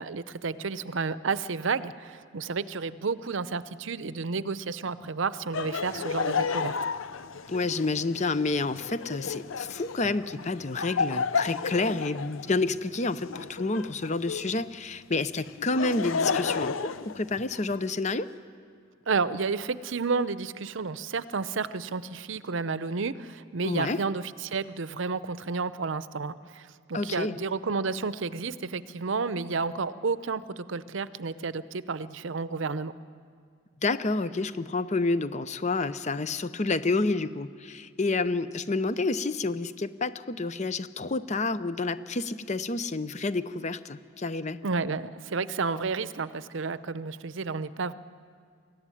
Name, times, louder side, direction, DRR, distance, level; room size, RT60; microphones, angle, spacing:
voice 1, 0.0-6.8 19.1-32.9 44.6-47.9, right 4 dB, 70° right, 15 dB, 0.7 m, -31 dB
Laughter, 5.5-14.6 15.5-17.8, left 5 dB, 80° left, 0.6 m, -32 dB
voice 2, 7.5-18.3 23.6-24.0 26.9-27.3 33.8-44.6, left 3 dB, 35° left, 13 dB, 0.7 m, -29 dB
23.5 x 14.5 x 9.9 m, 2.2 s
head